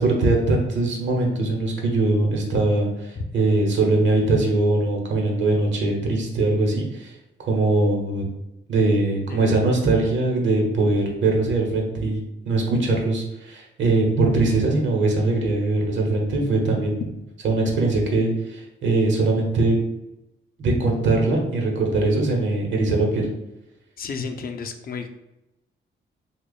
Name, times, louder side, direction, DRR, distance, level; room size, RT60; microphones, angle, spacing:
voice 1, 0.0-7.1 7.4-8.2 8.7-17.1 17.4-19.8 20.6-23.3, right 2 dB, 75° right, 1 dB, 0.9 m, -21 dB
voice 2, 24.0-25.1, left 5 dB, 50° left, 6 dB, 0.4 m, -32 dB
2.9 x 2.3 x 3.9 m, 0.91 s
cardioid pair, 90°, 19 cm